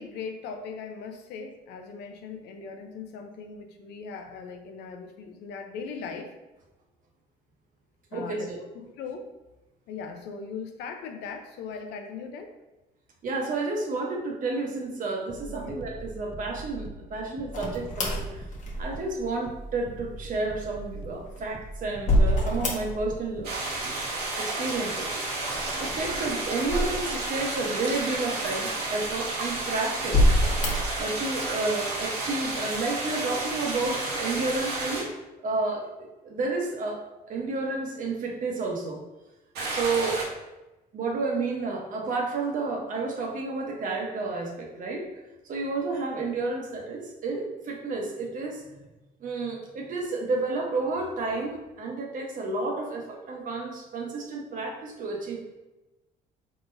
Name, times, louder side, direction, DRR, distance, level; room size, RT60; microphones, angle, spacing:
voice 1, 0.0-6.3 8.1-8.5 9.0-9.2 9.9-12.5 15.5-15.7, left 5 dB, 85° left, 5 dB, 0.6 m, -39 dB
voice 2, 8.1-8.6 13.2-18.4 18.8-23.6 24.4-25.1 25.8-30.3 31.0-35.1 35.4-37.0 37.3-39.0 39.7-40.2 40.9-45.1 45.5-48.6 49.2-55.6, right 3 dB, 50° right, 1 dB, 1.0 m, -31 dB
sound 1, 15.3-23.6, right 2 dB, 30° right, 0.5 m, -42 dB
sound 2, 17.5-19.2 21.0-23.3 23.5-24.2 25.4-27.5 28.1-28.2 29.0-29.6 30.0-31.0, left 1 dB, 45° left, 1.0 m, -26 dB
sound 3, 23.4-35.0 39.5-40.2, right 2 dB, 75° right, 1.1 m, -31 dB
4.9 x 3.8 x 2.6 m, 1.1 s
cardioid pair, 110°, 17 cm